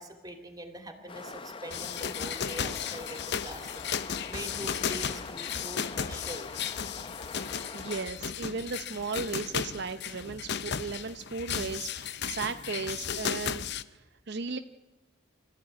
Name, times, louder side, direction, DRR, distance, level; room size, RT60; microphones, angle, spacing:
voice 1, 0.0-3.9 4.3-6.5, equal, 20° right, 6 dB, 2.9 m, -43 dB
sound 1, 1.1-8.1, left 4 dB, 25° left, 0.7 m, -43 dB
sound 2, 1.7-13.8, left 7 dB, 60° left, 0.8 m, -35 dB
voice 2, 7.7-13.6 13.9-14.6, right 4 dB, 55° right, 8 dB, 0.7 m, -36 dB
25.0 x 14.5 x 9.5 m, 1.1 s
head